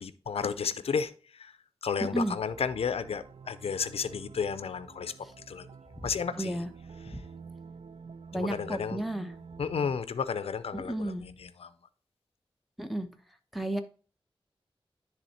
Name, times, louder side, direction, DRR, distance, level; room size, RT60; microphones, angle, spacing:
voice 1, 0.0-1.5 1.8-5.1 5.5-5.7 6.0-6.6 8.3-9.0 9.6-11.7, left 6 dB, 85° left, 0.5 m, -32 dB
voice 2, 2.0-2.4 5.2-5.3 6.0-6.1 6.4-6.7 7.1-7.2 8.3-9.3 10.7-11.2 12.8-13.1 13.5-13.8, right 1 dB, ahead, 0.9 m, -32 dB
sound 1, 2.5-10.0, right 5 dB, 65° right, 0.4 m, -48 dB
10.5 x 3.5 x 4.2 m
wide cardioid pair, 70°, 10 cm